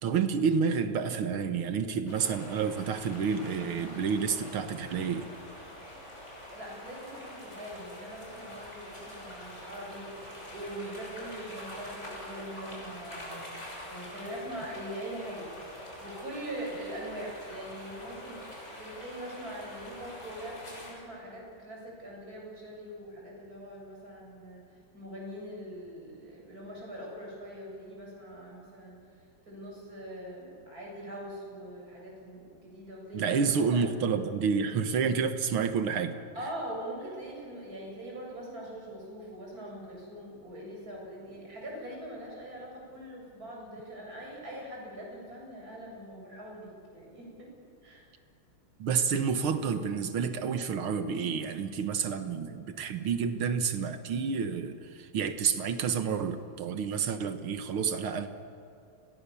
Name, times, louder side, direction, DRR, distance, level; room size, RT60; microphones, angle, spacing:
voice 1, 0.0-5.3 33.1-36.2 48.8-58.3, right 6 dB, 85° right, 8 dB, 2.2 m, -29 dB
sound 1, 2.1-20.9, left 1 dB, 30° left, 7.0 m, -45 dB
voice 2, 6.5-10.1 10.5-13.4 13.9-15.7 16.0-24.6 24.9-29.0 29.5-33.4 33.7-33.9 36.3-47.5 47.8-48.1, right 1 dB, 45° right, -2 dB, 8.1 m, -42 dB
30.0 x 22.5 x 7.1 m, 2.5 s
omnidirectional pair, 2.3 m